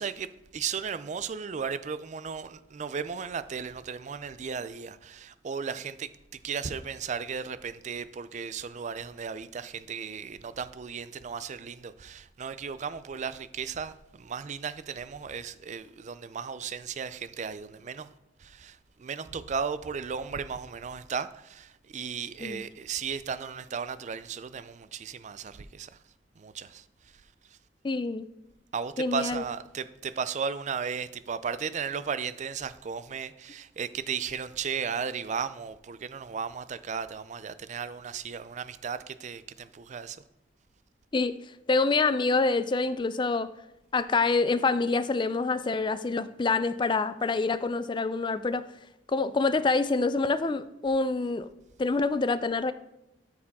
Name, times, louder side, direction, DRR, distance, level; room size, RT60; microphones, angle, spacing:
voice 1, 0.0-18.1 18.4-26.0 26.4-27.6 28.7-40.2, right 6 dB, 45° right, 0.4 m, -35 dB
voice 2, 27.8-28.3 29.0-29.4 41.1-41.4 41.7-43.5 43.9-48.6 49.1-51.5 51.8-52.7, left 3 dB, 25° left, 0.4 m, -26 dB
12.5 x 4.8 x 3.6 m
head